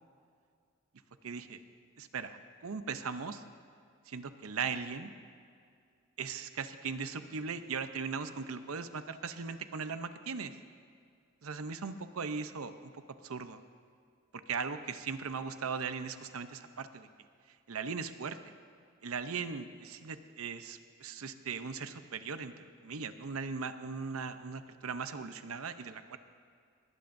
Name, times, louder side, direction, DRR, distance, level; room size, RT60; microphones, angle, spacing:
voice 1, 1.2-1.6 2.0-3.4 4.1-5.1 6.2-10.6 11.4-13.6 14.5-17.1 17.5-18.4 19.0-26.2, right 5 dB, 85° right, 10 dB, 0.7 m, -39 dB
20.5 x 17.5 x 2.6 m, 2.2 s
head